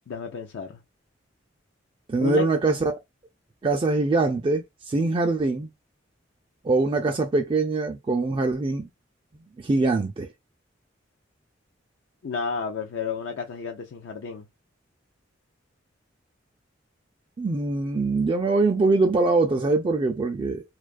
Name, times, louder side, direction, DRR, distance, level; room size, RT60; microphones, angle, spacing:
voice 1, 0.1-0.8 2.2-2.5 12.2-14.5, left 5 dB, 70° left, 0.4 m, -31 dB
voice 2, 2.1-2.9 3.6-5.7 6.6-8.9 9.6-10.3 17.4-20.6, right 3 dB, 25° right, 0.3 m, -23 dB
2.6 x 2.3 x 2.3 m
head